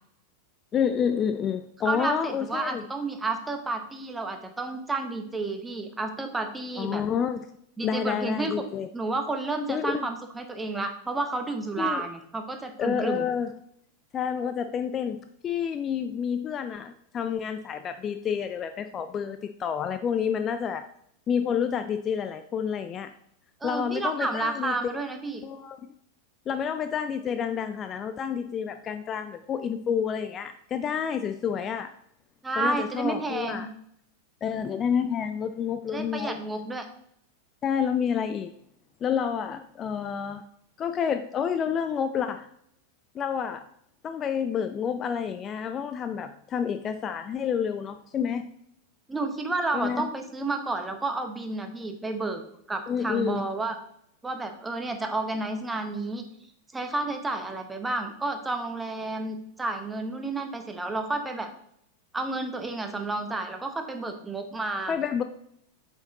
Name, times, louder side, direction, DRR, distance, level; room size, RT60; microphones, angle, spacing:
voice 1, 0.7-2.8 6.8-7.5 7.8-8.9 9.7-10.0 11.8-12.0 12.8-13.5 14.1-20.8 21.3-23.1 23.6-24.9 25.4-25.9 26.5-31.9 32.6-33.7 34.4-36.3 37.6-38.5 39.0-40.4 40.8-42.5 43.1-43.7 44.0-48.5 49.7-50.1 52.9-53.4 64.9-65.2, left 7 dB, 25° left, 9 dB, 0.3 m, -29 dB
voice 2, 1.8-7.0 7.8-8.5 8.9-13.3 23.6-25.4 32.4-33.7 35.9-36.9 49.1-52.4 52.7-53.8 54.2-56.3 56.7-61.5 62.1-64.9, right 3 dB, 10° right, 6 dB, 1.0 m, -31 dB
7.7 x 4.5 x 4.0 m, 0.70 s
figure-of-eight pair, 90°, 0 cm